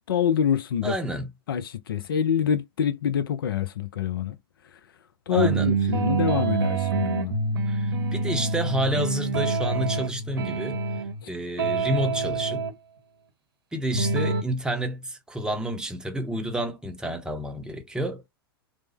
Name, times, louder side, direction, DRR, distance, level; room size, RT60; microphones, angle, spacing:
voice 1, 0.1-0.9 1.5-4.3 5.3-7.4, left 8 dB, 65° left, 0.5 m, -25 dB
voice 2, 0.8-1.3 5.3-5.7 7.7-10.8 11.3-12.6 13.7-18.3, right 1 dB, 5° right, 0.6 m, -29 dB
sound 1, 5.3-11.2 11.6-12.7 13.9-14.4, right 4 dB, 65° right, 0.8 m, -26 dB
3.1 x 2.0 x 3.2 m
figure-of-eight pair, 95°, 13 cm